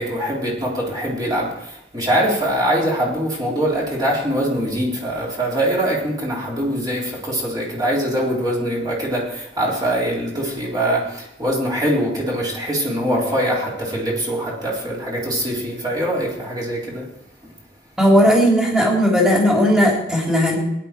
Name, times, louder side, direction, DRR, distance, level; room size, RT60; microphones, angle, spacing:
voice 1, 0.0-17.1, right 1 dB, 20° right, -5 dB, 3.8 m, -23 dB
voice 2, 18.0-20.6, equal, 5° right, -2 dB, 3.7 m, -16 dB
20.0 x 11.0 x 4.5 m, 0.84 s
head